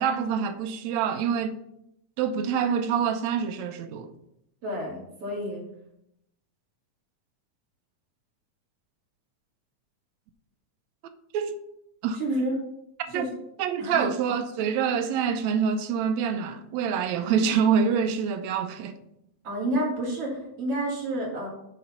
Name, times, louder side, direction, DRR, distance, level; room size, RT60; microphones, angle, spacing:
voice 1, 0.0-1.5 2.2-4.1 11.3-11.6 12.0-12.2 13.1-13.3 13.6-19.0, right 7 dB, 80° right, 1.7 m, -26 dB
voice 2, 4.6-5.6 12.2-12.5 13.1-13.3 13.8-14.0 19.4-21.5, right 1 dB, 50° right, 3.4 m, -29 dB
8.7 x 4.0 x 5.8 m
omnidirectional pair, 3.5 m